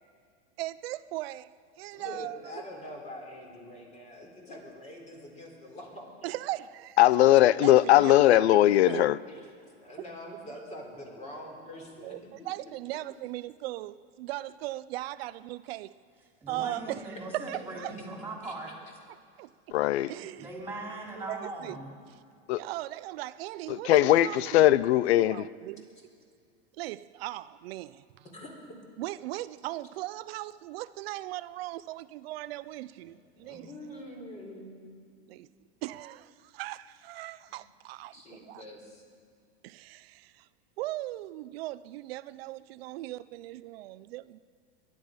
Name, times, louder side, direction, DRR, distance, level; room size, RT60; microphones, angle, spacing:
voice 1, 0.6-2.6 6.2-7.0 7.5-8.4 8.9-9.1 12.0-15.9 16.5-17.1 17.3-17.9 19.4-19.5 20.1-20.5 21.2-21.8 22.1-22.2 22.5-24.7 25.2-25.9 26.7-28.2 29.0-33.7 35.3-35.5 35.8-38.6 39.6-40.5 40.8-44.4, right 16 dB, 65° right, 0.5 m, -38 dB
voice 2, 1.9-6.0 9.3-9.5 9.8-13.0 18.4-18.5 21.1-21.2 21.6-21.7 28.3-28.7 33.0-34.8 38.1-39.0, left 1 dB, 20° left, 3.7 m, -45 dB
voice 3, 7.0-9.2 19.7-20.1 22.5-22.6 23.7-25.4, left 14 dB, 85° left, 0.5 m, -20 dB
voice 4, 16.4-18.7 20.1-21.9, right 2 dB, 5° right, 3.5 m, -40 dB
22.5 x 10.5 x 5.2 m
supercardioid pair, 140°, 32 cm